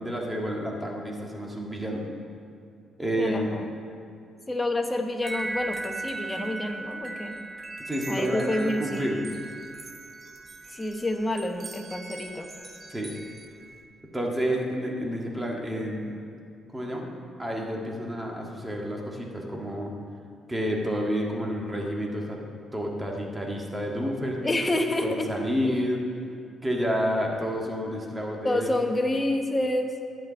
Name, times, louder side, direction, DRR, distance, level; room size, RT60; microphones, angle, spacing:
voice 1, 0.0-2.1 3.0-3.6 7.9-9.2 12.9-13.1 14.1-16.1 16.7-17.1 17.4-19.9 20.5-22.4 22.7-24.6 25.0-26.0 26.6-28.9, equal, 10° right, -1 dB, 1.8 m, -29 dB
voice 2, 3.2-3.7 4.5-7.5 8.1-9.3 10.7-12.5 24.4-25.3 25.6-25.7 28.4-29.9, left 1 dB, 20° left, 4 dB, 1.0 m, -28 dB
sound 1, 5.2-13.8, right 2 dB, 35° right, 1.2 m, -38 dB
11.0 x 5.1 x 8.5 m, 2.5 s
cardioid pair, 90°, 0 cm